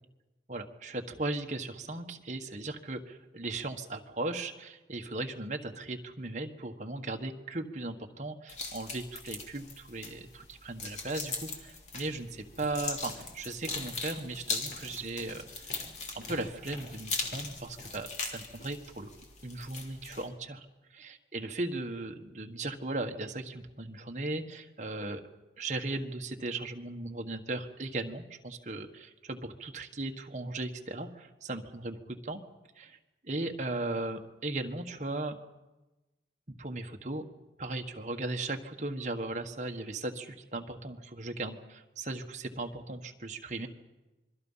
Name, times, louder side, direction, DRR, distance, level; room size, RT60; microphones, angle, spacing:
voice 1, 0.5-15.4 16.1-19.1 19.4-20.6 20.9-25.2 25.6-32.4 32.7-33.0 33.2-35.3 36.5-37.2 37.6-43.7, right 2 dB, 40° right, 4 dB, 1.5 m, -37 dB
sound 1, 8.5-20.3, left 4 dB, 40° left, 2.9 m, -40 dB
Walk footsteps, 11.9-19.9, left 1 dB, 55° left, 6.9 m, -52 dB
27.0 x 22.5 x 5.7 m, 1.1 s
head